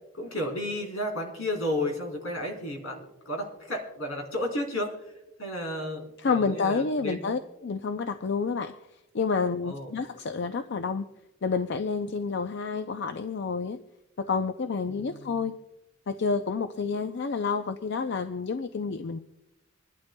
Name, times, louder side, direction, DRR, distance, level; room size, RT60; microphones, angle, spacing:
voice 1, 0.1-4.9 5.4-7.3 9.6-9.9 14.9-15.5, left 1 dB, 85° left, 1 dB, 3.7 m, -33 dB
voice 2, 6.2-8.8 9.1-11.1 11.4-13.8 14.2-15.6 16.1-19.2, left 5 dB, 55° left, 8 dB, 0.5 m, -29 dB
26.0 x 11.5 x 2.2 m, 0.94 s
head